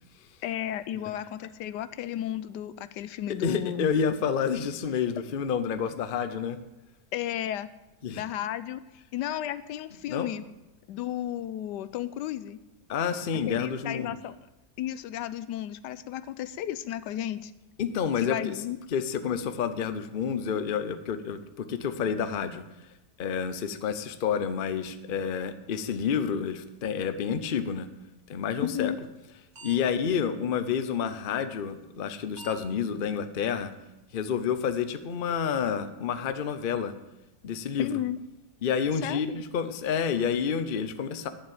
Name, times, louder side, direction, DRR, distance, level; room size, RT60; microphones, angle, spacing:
voice 1, 0.4-3.9 7.1-7.7 8.2-8.8 9.1-10.4 10.9-12.6 13.5-14.4 14.8-17.5 18.2-18.8 28.6-29.0 37.8-38.2 39.0-39.4, left 12 dB, 85° left, 14 dB, 1.2 m, -33 dB
voice 2, 3.4-6.6 8.0-8.2 10.1-10.3 12.9-14.2 17.8-18.5 18.9-22.6 23.2-27.9 28.3-28.9 29.6-33.7 34.1-36.9 37.4-37.9 38.6-41.3, left 7 dB, 45° left, 11 dB, 0.7 m, -29 dB
sound 1, 29.0-29.3 29.5-29.8 30.0-30.1 31.1-31.2 32.1-32.2 32.4-32.6 33.1-33.2 33.6-33.7 34.1-34.2, right 3 dB, 45° right, 1.8 m, -45 dB
11.0 x 7.2 x 8.8 m, 0.96 s
omnidirectional pair, 1.8 m